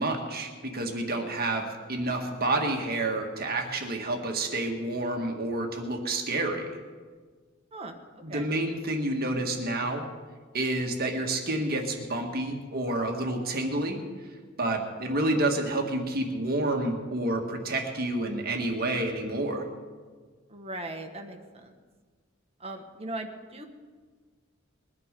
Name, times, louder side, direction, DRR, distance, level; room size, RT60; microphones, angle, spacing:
voice 1, 0.0-6.8 8.2-10.0 10.5-14.0 14.6-19.7, right 2 dB, 50° right, 3 dB, 1.7 m, -29 dB
voice 2, 20.5-21.7 22.6-23.6, right 2 dB, 30° right, 3 dB, 1.4 m, -38 dB
21.5 x 10.5 x 5.3 m, 1.5 s
head